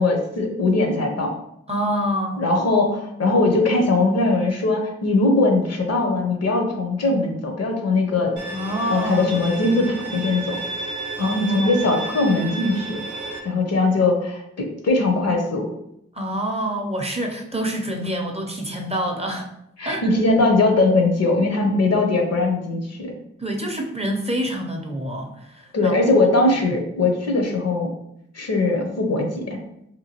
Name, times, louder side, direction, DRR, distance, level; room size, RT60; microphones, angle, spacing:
voice 1, 0.0-1.3 2.4-8.4 8.9-10.6 11.2-13.0 13.4-15.7 19.8-23.1 25.7-27.9 28.3-29.6, left 2 dB, 60° left, 3 dB, 0.7 m, -20 dB
voice 2, 1.7-2.4 8.5-9.4 11.2-11.8 16.1-19.5 19.9-20.0 23.4-26.0 26.5-26.7, equal, 20° right, 1 dB, 0.6 m, -27 dB
Bowed string instrument, 8.4-13.4, right 3 dB, 90° right, 0.6 m, -32 dB
2.9 x 2.2 x 2.9 m, 0.78 s
cardioid pair, 40°, 29 cm